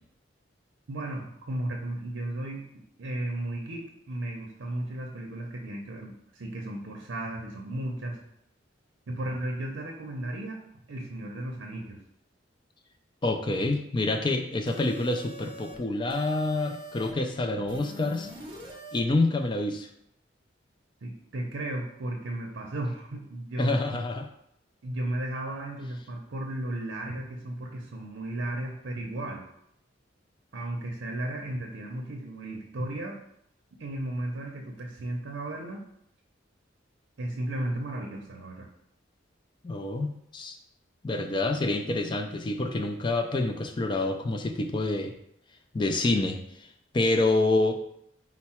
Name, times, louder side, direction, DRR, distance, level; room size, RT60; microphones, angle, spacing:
voice 1, 0.9-8.2 9.1-10.6 10.9-12.0 21.0-24.0 24.8-29.4 30.5-33.2 33.8-35.8 37.2-38.7, right 1 dB, 90° right, 1 dB, 0.6 m, -34 dB
voice 2, 13.2-18.3 18.9-19.9 23.6-24.3 39.6-40.6 41.0-45.1 45.7-47.7, left 2 dB, 25° left, 5 dB, 0.3 m, -27 dB
sound 1, 14.7-15.8 16.1-17.1 17.7-19.0, right 1 dB, 25° right, 0.6 m, -44 dB
4.5 x 2.0 x 4.3 m, 0.75 s
head